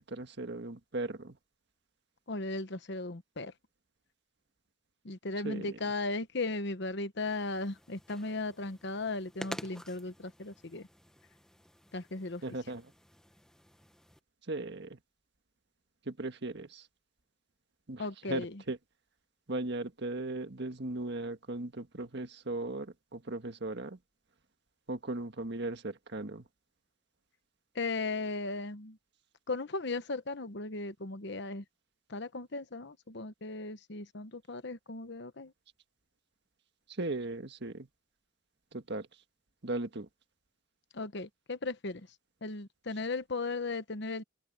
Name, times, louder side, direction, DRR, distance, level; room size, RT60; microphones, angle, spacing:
voice 1, 0.0-1.4 5.4-5.8 12.4-12.9 14.5-15.0 16.0-16.9 17.9-18.8 19.5-24.0 24.9-26.4 37.0-37.9 38.7-39.1 39.6-40.1, right 2 dB, 55° right, 1.6 m, -37 dB
voice 2, 2.3-3.5 5.0-10.9 11.9-12.4 18.0-18.6 27.7-29.0 29.5-31.6 32.1-35.5 40.9-42.1 42.4-44.2, left 3 dB, 55° left, 1.1 m, -36 dB
sound 1, 7.2-14.2, equal, 5° left, 1.0 m, -50 dB
open air
head